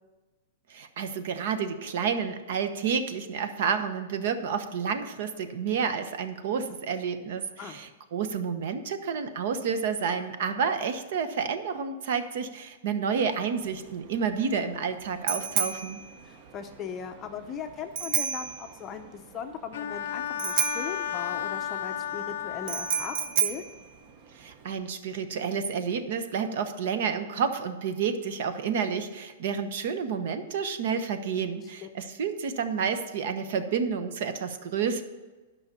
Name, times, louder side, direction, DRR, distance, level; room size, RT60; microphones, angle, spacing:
voice 1, 0.7-16.0 24.3-35.0, right 6 dB, 55° right, 9 dB, 1.0 m, -30 dB
Bicycle bell, 13.6-24.7, right 7 dB, 35° right, 0.7 m, -33 dB
voice 2, 16.2-23.6 31.8-31.9, left 7 dB, 20° left, 5 dB, 0.6 m, -39 dB
Bowed string instrument, 19.7-23.4, left 10 dB, 65° left, 0.6 m, -33 dB
11.0 x 5.7 x 6.8 m, 1.2 s
supercardioid pair, 165°, 0 cm